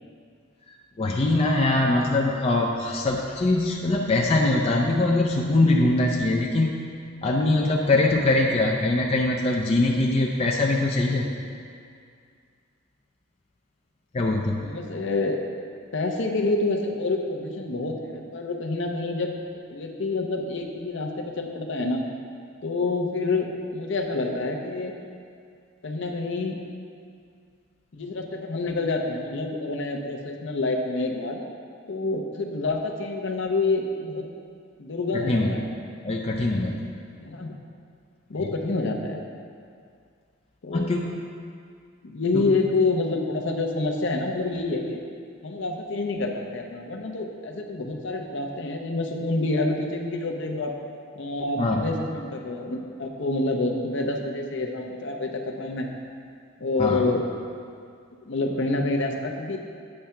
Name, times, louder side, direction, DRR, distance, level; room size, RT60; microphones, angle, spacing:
voice 1, 1.0-6.8 7.2-11.3 14.1-14.6 35.1-35.5 36.0-36.8 40.7-41.1 42.3-42.5 51.6-51.9 56.8-57.0, left 2 dB, 30° left, -1 dB, 0.4 m, -22 dB
voice 2, 14.6-15.4 15.9-19.4 19.7-22.0 22.6-23.5 23.7-24.9 25.8-26.6 27.9-31.4 31.9-34.3 34.8-35.7 37.2-37.6 38.3-39.2 40.6-40.9 42.0-45.0 45.4-50.7 51.1-55.3 55.6-55.9 56.6-57.3 58.2-59.6, left 3 dB, 60° left, 2 dB, 0.7 m, -27 dB
8.7 x 3.4 x 5.7 m, 2.3 s
head